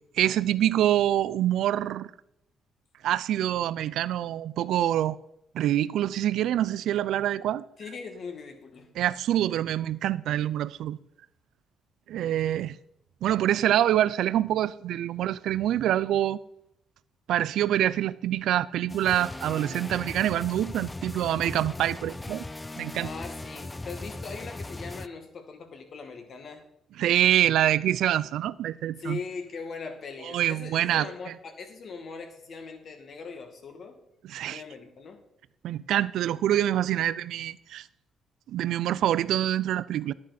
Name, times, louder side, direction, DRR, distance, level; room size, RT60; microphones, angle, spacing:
voice 1, 0.1-2.1 3.0-5.2 5.5-7.6 9.0-11.0 12.1-12.8 13.2-16.4 17.3-22.4 22.8-23.1 27.0-29.2 30.2-31.1 34.3-34.6 35.6-37.9 38.5-40.1, right 12 dB, 80° right, 0.4 m, -25 dB
voice 2, 7.8-8.9 23.0-26.6 29.0-34.0 34.4-35.2, left 4 dB, 55° left, 2.1 m, -40 dB
sound 1, 18.9-25.1, left 2 dB, 15° left, 0.4 m, -38 dB
11.5 x 9.6 x 4.2 m
cardioid pair, 90°, 0 cm